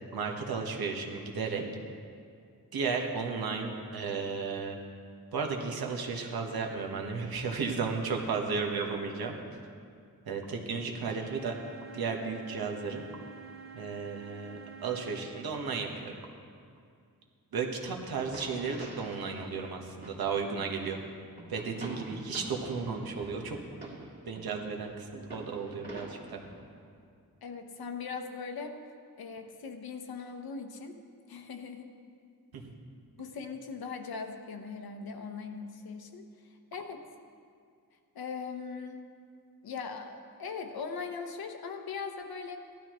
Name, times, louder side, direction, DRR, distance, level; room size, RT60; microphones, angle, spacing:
voice 1, 0.1-1.6 2.7-4.8 5.3-9.3 10.2-11.5 11.9-13.1 13.7-16.1 17.5-21.0 21.5-23.6 24.2-26.4 32.5-32.7, right 5 dB, 75° right, 2 dB, 1.3 m, -34 dB
sound 1, 11.1-15.2, right 6 dB, 90° right, 1.8 m, -48 dB
sound 2, 18.2-20.2 20.6-21.0 21.4-24.5 24.8-26.6, right 1 dB, 30° right, 2.2 m, -47 dB
voice 2, 27.4-28.8 29.2-31.0 31.3-31.9 33.2-36.3 36.7-37.0 38.1-39.1 39.6-42.6, left 5 dB, 75° left, 5 dB, 1.0 m, -40 dB
16.5 x 12.0 x 3.1 m, 2.3 s
wide cardioid pair, 170°, 37 cm